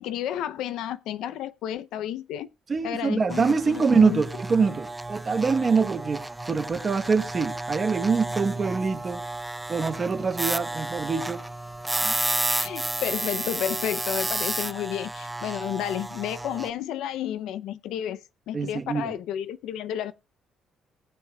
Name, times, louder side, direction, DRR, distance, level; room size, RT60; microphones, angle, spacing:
voice 1, 0.0-2.5 2.8-4.2 12.5-20.1, left 10 dB, 90° left, 0.5 m, -31 dB
voice 2, 2.7-9.2 9.7-11.4 12.0-12.1 18.5-19.1, right 5 dB, 30° right, 1.0 m, -24 dB
sound 1, 3.3-16.7, right 1 dB, 5° right, 0.5 m, -32 dB
19.5 x 7.4 x 2.3 m
cardioid pair, 145°, 0 cm